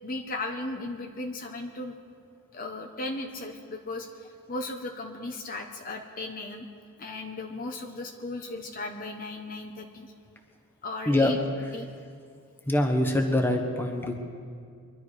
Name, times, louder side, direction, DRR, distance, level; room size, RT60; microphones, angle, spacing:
voice 1, 0.0-2.0 2.5-6.7 7.0-10.1 10.8-11.4 11.7-11.9, left 2 dB, 40° left, 3 dB, 0.9 m, -36 dB
voice 2, 12.7-14.2, left 1 dB, 10° left, 3 dB, 1.1 m, -24 dB
23.5 x 11.5 x 4.9 m, 2.2 s
head